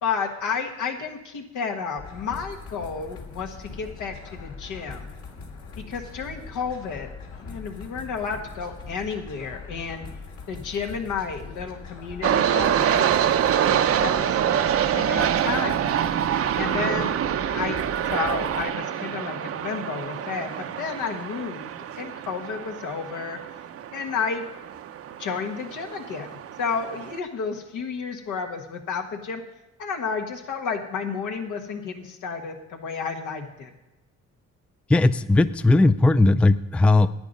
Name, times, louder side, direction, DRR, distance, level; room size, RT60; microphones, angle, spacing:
voice 1, 0.0-5.1 5.9-7.1 7.3-10.1 10.5-13.1 13.7-14.6 14.9-15.9 16.6-17.2 17.5-17.8 18.1-23.4 23.9-24.5 25.2-26.3 26.6-29.4 29.8-33.7, left 5 dB, 90° left, 3 dB, 1.6 m, -31 dB
sound 1, 2.0-18.6, left 4 dB, 70° left, 2.3 m, -41 dB
sound 2, 12.2-27.2, right 9 dB, 50° right, 0.6 m, -26 dB
voice 2, 34.9-37.1, left 2 dB, 5° left, 14 dB, 0.3 m, -18 dB
10.5 x 9.3 x 5.2 m, 1.0 s
cardioid pair, 90°, 30 cm